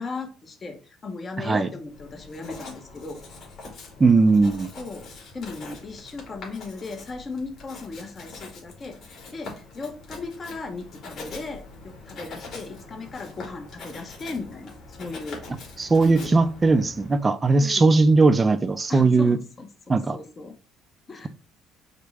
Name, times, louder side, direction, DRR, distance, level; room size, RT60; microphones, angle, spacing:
voice 1, 0.0-3.2 4.8-5.1 5.3-15.5 15.9-16.5 17.6-17.9 18.9-20.6 21.1-21.3, left 3 dB, 30° left, 0.8 m, -37 dB
Writing, 1.9-17.2, left 3 dB, 55° left, 2.2 m, -43 dB
voice 2, 4.0-4.7 15.8-19.4 19.9-20.2, right 3 dB, 20° right, 0.4 m, -19 dB
5.1 x 2.2 x 4.7 m
cardioid pair, 110°, 0 cm